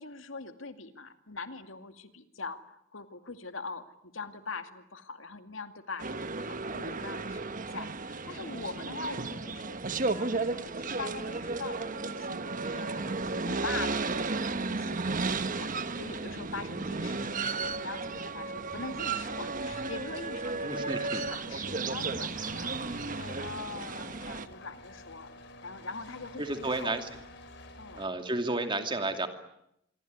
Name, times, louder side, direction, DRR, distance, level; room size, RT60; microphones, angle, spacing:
voice 1, 0.0-22.7 23.0-25.3 25.6-27.0 27.8-28.0, left 4 dB, 90° left, 8 dB, 2.3 m, -43 dB
sound 1, 6.0-24.5, right 3 dB, 45° right, 1.2 m, -34 dB
voice 2, 20.6-21.2 26.4-27.1 27.9-29.3, right 2 dB, 25° right, 6 dB, 2.7 m, -32 dB
sound 2, 22.3-28.1, left 2 dB, 60° left, 3.4 m, -49 dB
26.0 x 23.5 x 9.6 m, 0.79 s
head